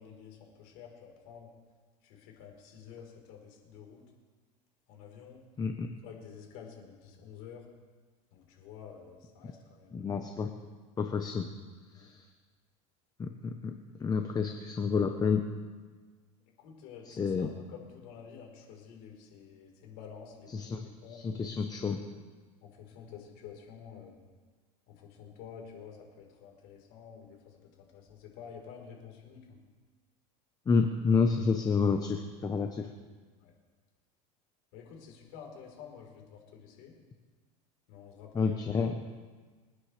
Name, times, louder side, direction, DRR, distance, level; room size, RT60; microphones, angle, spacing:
voice 1, 0.0-1.5 2.0-4.0 4.9-5.4 6.0-7.6 8.3-10.2 11.9-12.1 16.6-21.9 22.6-24.2 24.9-29.6 33.4-33.5 34.7-37.0 37.9-39.0, left 7 dB, 65° left, 0 dB, 4.1 m, -50 dB
voice 2, 9.9-10.5 11.0-11.5 11.9-12.1 13.2-13.7 14.0-15.4 17.2-17.5 20.5-20.8 21.1-22.0 30.7-32.9 38.3-38.9, left 5 dB, 20° left, 5 dB, 0.9 m, -29 dB
27.5 x 9.7 x 3.3 m, 1.4 s
supercardioid pair, 125°, 19 cm